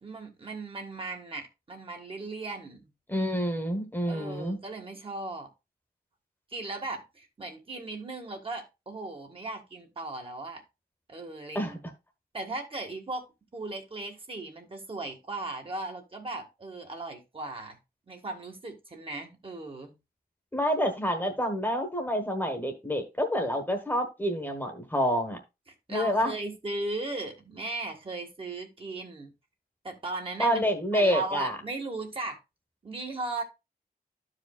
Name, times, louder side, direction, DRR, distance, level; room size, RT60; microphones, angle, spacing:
voice 1, 0.0-2.9 4.1-5.5 6.5-10.6 11.1-11.8 12.3-13.2 13.5-17.8 18.1-20.0 25.9-29.3 29.8-32.4 32.8-33.4, right 2 dB, 35° right, 1.6 m, -37 dB
voice 2, 3.1-4.6 11.5-11.8 20.5-25.4 25.9-26.3 30.4-31.5, equal, 10° left, 1.3 m, -28 dB
13.0 x 5.0 x 2.3 m
wide cardioid pair, 150°, 16 cm